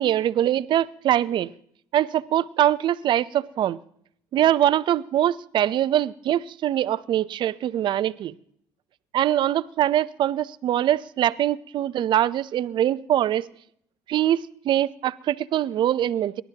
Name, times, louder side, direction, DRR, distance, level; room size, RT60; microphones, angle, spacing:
voice 1, 0.0-1.5 1.9-3.8 4.3-8.3 9.1-13.5 14.1-16.4, right 11 dB, 55° right, 15 dB, 0.7 m, -23 dB
30.0 x 12.5 x 2.9 m, 0.67 s
supercardioid pair, 75°, 9 cm